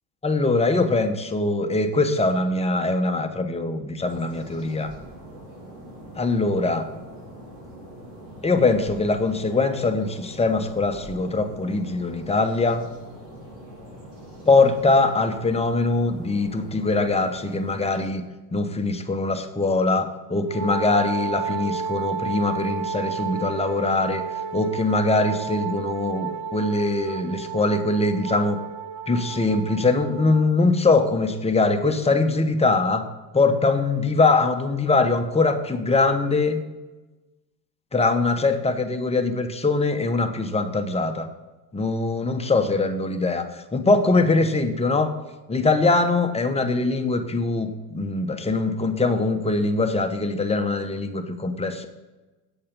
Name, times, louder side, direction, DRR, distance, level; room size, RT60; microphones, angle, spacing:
voice 1, 0.2-4.9 6.2-6.9 8.4-12.8 14.5-18.2 18.5-24.2 24.5-28.6 29.1-33.0 33.3-36.6 37.9-41.3 41.7-45.1 45.5-51.9, left 3 dB, 15° left, 6 dB, 1.0 m, -22 dB
sound 1, 4.0-18.1, right 1 dB, 80° right, 3.4 m, -43 dB
Wind instrument woodwind instrument, 20.5-30.5, right 6 dB, 50° right, 0.7 m, -32 dB
8.5 x 6.8 x 5.3 m, 1.1 s
hypercardioid pair, 80°, 49 cm